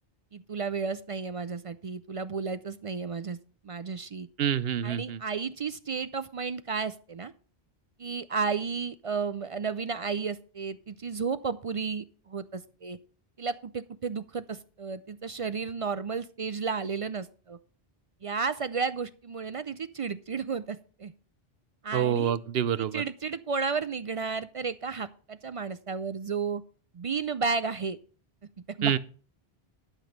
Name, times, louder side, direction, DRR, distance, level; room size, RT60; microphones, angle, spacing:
voice 1, 0.3-3.4 3.6-4.3 4.8-7.3 8.0-13.0 13.4-17.6 18.2-21.1 21.8-22.3 22.9-26.6 26.9-28.0 28.8-29.0, right 5 dB, 45° right, 0.4 m, -33 dB
voice 2, 4.4-5.2 21.9-23.0 28.8-29.0, right 9 dB, 75° right, 0.9 m, -27 dB
11.5 x 6.1 x 5.2 m
omnidirectional pair, 1.0 m